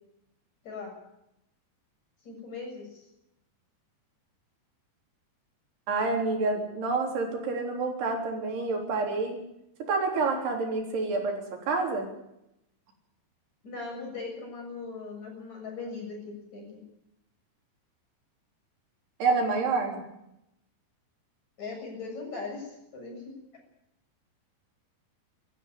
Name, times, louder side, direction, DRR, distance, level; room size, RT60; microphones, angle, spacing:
voice 1, 2.2-3.0 13.6-16.8 21.6-23.4, left 4 dB, 45° left, 0 dB, 8.2 m, -39 dB
voice 2, 5.9-9.4 9.9-12.1 19.2-20.0, right 3 dB, 80° right, 2 dB, 5.7 m, -28 dB
19.5 x 14.5 x 9.5 m, 0.84 s
omnidirectional pair, 4.6 m